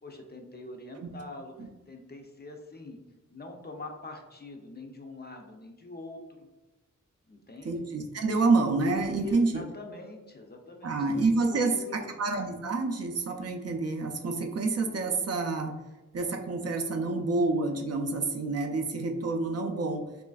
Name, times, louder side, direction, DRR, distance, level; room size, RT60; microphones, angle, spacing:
voice 1, 0.0-3.0 3.3-6.5 7.3-7.8 9.2-11.0 11.5-12.2, left 2 dB, 35° left, 3 dB, 0.4 m, -44 dB
voice 2, 7.6-9.6 10.8-15.7 16.1-20.0, right 3 dB, 55° right, 3 dB, 0.4 m, -28 dB
3.1 x 2.5 x 2.3 m, 1.1 s
cardioid pair, 55°, 31 cm